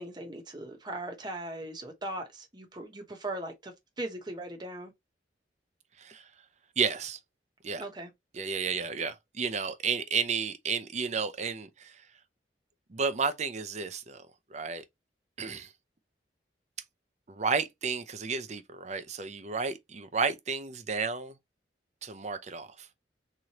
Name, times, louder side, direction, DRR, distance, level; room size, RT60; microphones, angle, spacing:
voice 1, 0.0-4.9 7.8-8.1, right 1 dB, 25° right, 1.0 m, -39 dB
voice 2, 6.8-7.2 7.6-7.9 8.3-12.0 12.9-14.2 14.5-14.8 15.4-15.7 17.3-21.3 22.0-22.9, right 5 dB, 40° right, 0.6 m, -32 dB
3.7 x 3.2 x 2.9 m
head